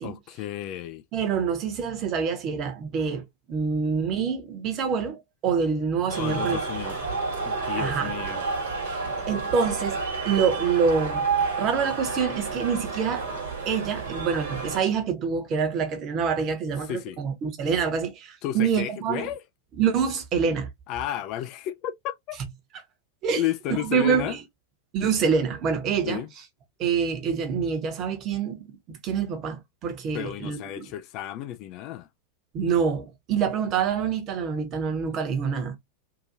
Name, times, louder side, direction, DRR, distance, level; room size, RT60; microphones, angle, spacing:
voice 1, 0.0-1.0 6.2-7.0 7.5-8.4 16.8-17.2 18.4-19.4 20.9-22.4 23.4-24.4 26.1-26.3 30.1-32.1, left 12 dB, 40° left, 0.3 m, -32 dB
voice 2, 1.1-6.6 7.8-8.1 8.9-9.0 9.3-10.0 10.2-11.3 11.6-13.3 13.7-19.3 19.8-20.7 23.2-23.4 23.7-24.4 24.9-26.2 26.8-30.9 32.5-35.8, right 6 dB, 35° right, 1.0 m, -26 dB
sound 1, 6.1-14.8, right 4 dB, 60° right, 1.4 m, -30 dB
2.8 x 2.6 x 2.5 m
figure-of-eight pair, 90°, 0 cm